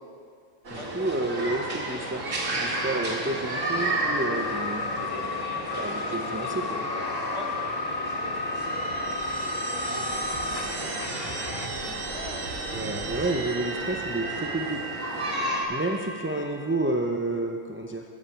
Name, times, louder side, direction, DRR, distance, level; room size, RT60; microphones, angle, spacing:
sound 1, 0.6-15.6, right 1 dB, 80° right, 2.3 m, -33 dB
voice 1, 0.7-2.2 2.5-4.9 5.8-6.8 12.7-14.8 15.7-18.0, right 2 dB, 15° right, 2 dB, 0.4 m, -30 dB
sound 2, 3.7-11.7, left 4 dB, 65° left, 0.4 m, -33 dB
sound 3, 7.6-16.9, right 4 dB, 40° right, 0.8 m, -37 dB
voice 2, 10.7-11.2 11.8-12.7, left 1 dB, 25° left, 1 dB, 1.2 m, -44 dB
13.5 x 7.5 x 6.8 m, 2.2 s
omnidirectional pair, 1.3 m